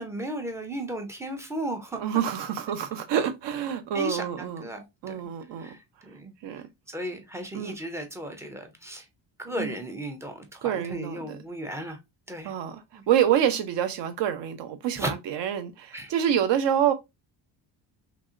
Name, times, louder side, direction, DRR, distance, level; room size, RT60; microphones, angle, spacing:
voice 1, 0.0-2.0 3.9-4.9 5.2-5.3 5.6-5.8 6.1-6.3 6.9-9.0 9.4-12.0 12.3-12.5 12.9-13.0 15.0-15.1 15.9-16.1, right 1 dB, 5° right, 0.3 m, -35 dB
voice 2, 2.0-4.6 5.0-5.8 6.4-6.7 7.5-7.7 9.5-9.7 10.6-11.4 12.4-16.9, right 9 dB, 70° right, 0.7 m, -27 dB
3.0 x 2.7 x 2.4 m
cardioid pair, 150°, 44 cm